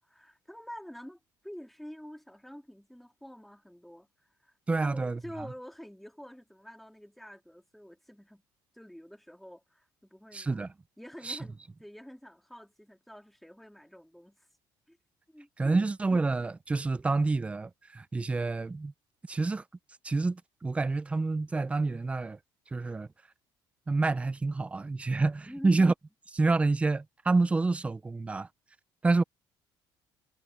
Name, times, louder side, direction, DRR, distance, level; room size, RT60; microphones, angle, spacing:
voice 1, 0.0-8.4 8.7-10.7 11.0-14.5 14.9-15.0 15.3-15.9 25.5-25.9, equal, ahead, 3.4 m, -48 dB
voice 2, 4.7-5.2 10.3-10.7 11.3-11.4 15.6-18.9 19.3-19.6 20.0-22.4 22.7-23.1 23.9-25.9 26.3-28.5 29.0-29.2, right 3 dB, 15° right, 0.6 m, -28 dB
cardioid pair, 140°, 9 cm